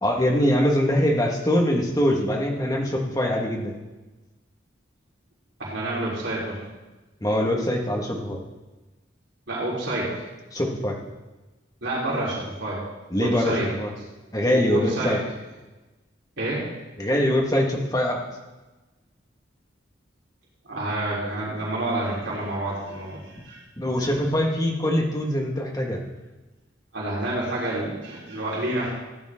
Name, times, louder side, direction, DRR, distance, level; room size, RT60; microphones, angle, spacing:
voice 1, 0.0-3.8 7.2-8.4 10.5-11.0 13.1-13.9 14.3-15.2 17.0-18.2 23.8-26.0, equal, 20° left, 0 dB, 1.6 m, -23 dB
voice 2, 5.6-6.6 9.5-10.1 11.8-12.8 13.2-13.7 14.5-15.2 16.4-16.6 20.6-23.6 26.9-28.9, right 1 dB, 70° right, -6 dB, 3.9 m, -28 dB
15.5 x 10.0 x 3.7 m, 1.1 s
head